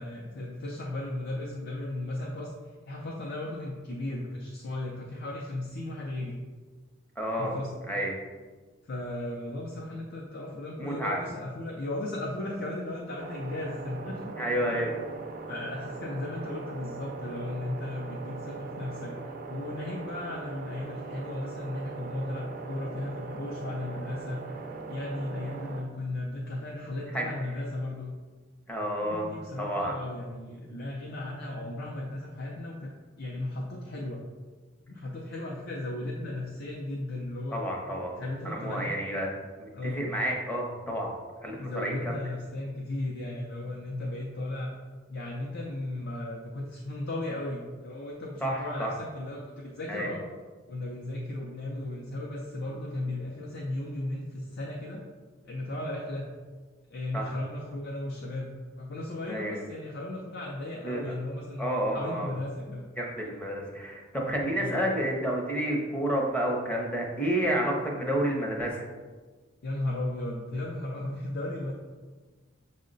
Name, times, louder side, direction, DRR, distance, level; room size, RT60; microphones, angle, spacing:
voice 1, 0.0-2.5 2.9-6.4 7.4-7.7 8.8-14.8 15.5-19.2 19.5-24.4 24.9-28.1 29.0-32.9 33.2-34.2 34.9-37.6 38.2-38.9 39.7-40.1 41.6-44.7 45.1-50.2 50.7-55.0 55.4-56.3 56.9-62.9 64.6-64.7 69.6-71.7, left 1 dB, 55° left, -3 dB, 0.5 m, -35 dB
voice 2, 7.2-7.5 7.9-8.1 10.8-11.2 14.4-14.9 27.1-27.3 28.7-29.3 29.6-30.0 37.5-39.3 39.6-41.1 41.4-42.2 48.4-48.9 49.9-50.1 57.1-57.4 59.3-59.6 60.8-61.0 61.6-62.3 63.0-68.9, right 1 dB, 5° left, -1 dB, 0.7 m, -30 dB
sound 1, 13.2-25.8, right 4 dB, 45° right, 0.4 m, -40 dB
6.2 x 2.1 x 3.8 m, 1.4 s
head